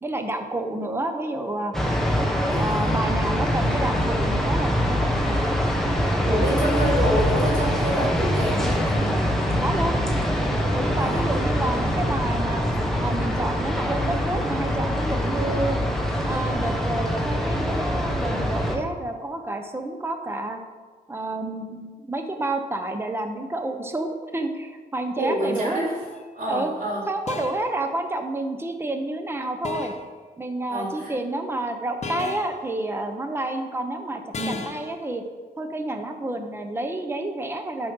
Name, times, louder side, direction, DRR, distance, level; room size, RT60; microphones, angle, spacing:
voice 1, 0.0-1.8 2.5-5.5 6.1-6.9 9.6-9.9 10.7-12.6 13.0-15.8 16.2-20.6 21.1-25.8 26.5-26.7 27.1-29.9 30.4-35.2 35.6-37.9, right 2 dB, 15° right, 6 dB, 0.9 m, -29 dB
sound 1, 1.7-18.8, equal, ahead, 1.5 m, -24 dB
voice 2, 2.4-3.0 6.3-9.1 10.9-11.2 25.2-26.0 26.3-27.1 30.7-31.1 34.3-34.6, equal, 60° right, -4 dB, 3.3 m, -27 dB
sound 2, 26.0-26.3 27.3-27.8 29.6-30.1 32.0-32.6 34.3-34.9, left 4 dB, 45° left, 0.8 m, -34 dB
11.5 x 5.3 x 5.5 m, 1.4 s
cardioid pair, 105°, 16 cm